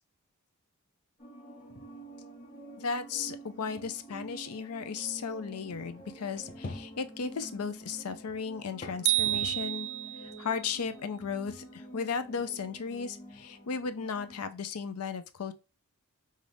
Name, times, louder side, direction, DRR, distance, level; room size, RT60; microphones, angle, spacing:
sound 1, 1.2-14.5, right 1 dB, 20° left, 1.3 m, -48 dB
sound 2, 1.6-2.1 2.4-2.5 3.2-3.3 3.8-9.8 10.2-14.5, left 2 dB, 35° left, 0.6 m, -49 dB
voice 1, 2.8-9.9 10.2-15.5, left 5 dB, 85° left, 0.5 m, -35 dB
sound 3, 9.1-10.4, right 16 dB, 50° right, 0.3 m, -29 dB
5.5 x 2.4 x 3.3 m
head